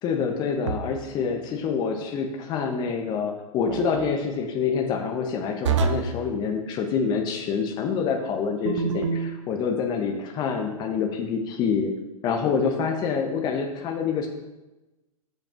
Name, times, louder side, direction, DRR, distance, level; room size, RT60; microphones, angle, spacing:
voice 1, 0.0-11.9 12.2-14.3, left 6 dB, 20° left, 4 dB, 0.7 m, -26 dB
sound 1, 0.6-1.1 3.7-4.1 5.6-6.2 8.6-9.4, right 6 dB, 55° right, 0.7 m, -26 dB
13.0 x 5.3 x 2.5 m, 1.1 s
figure-of-eight pair, 110°, 19 cm